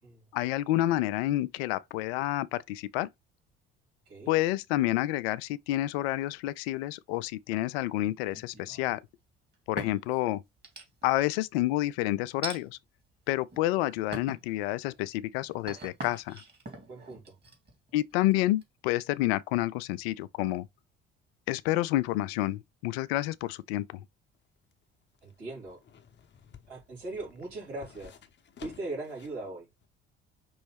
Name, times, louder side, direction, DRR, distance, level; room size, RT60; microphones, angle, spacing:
voice 1, 0.3-3.1 4.3-9.0 9.7-10.4 11.0-12.8 13.3-16.4 17.9-20.7 21.5-24.0, left 16 dB, 65° left, 0.4 m, -29 dB
sound 1, 8.3-9.0 9.5-10.2 10.6-11.3 12.4-12.6 13.3-13.7 14.1-14.5 14.9-18.6, right 2 dB, 30° right, 2.2 m, -43 dB
voice 2, 16.9-17.4 25.2-25.8 26.7-28.1 28.6-29.7, right 2 dB, 75° right, 3.5 m, -39 dB
sound 2, 24.3-29.4 29.8-29.9, left 7 dB, 35° left, 0.8 m, -54 dB
5.3 x 3.0 x 3.3 m
figure-of-eight pair, 55°, 34 cm